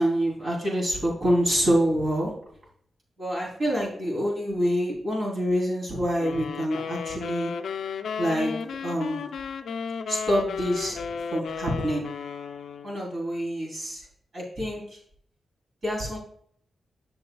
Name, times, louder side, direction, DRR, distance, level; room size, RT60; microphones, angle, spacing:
voice 1, 0.0-2.3 3.2-7.5 8.2-8.5 8.8-9.3 10.1-11.0 11.3-12.1 12.8-14.0 14.3-14.8 15.8-16.2, equal, 55° right, -4 dB, 3.4 m, -26 dB
sound 1, 6.2-13.0, left 6 dB, 85° left, 0.5 m, -34 dB
10.5 x 7.2 x 2.3 m, 0.66 s
cardioid pair, 90°, 0 cm